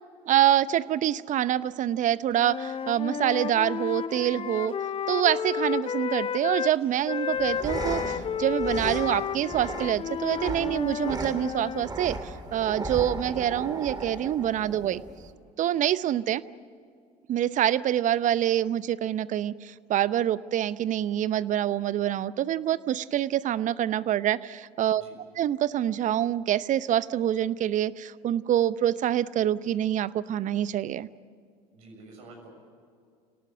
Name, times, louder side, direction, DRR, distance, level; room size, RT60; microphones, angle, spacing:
voice 1, 0.3-4.7 5.1-15.0 15.6-16.4 17.3-25.0 25.3-31.1, right 11 dB, 40° right, 18 dB, 0.8 m, -26 dB
Wind instrument woodwind instrument, 2.4-6.7 7.1-11.9, left 7 dB, 30° left, 0.8 m, -32 dB
sound 1, 7.3-15.3, right 2 dB, 20° right, 3.0 m, -36 dB
voice 2, 31.7-32.5, right 2 dB, 70° right, 1 dB, 6.9 m, -49 dB
27.5 x 18.5 x 7.9 m, 2.2 s
figure-of-eight pair, 65°, 19 cm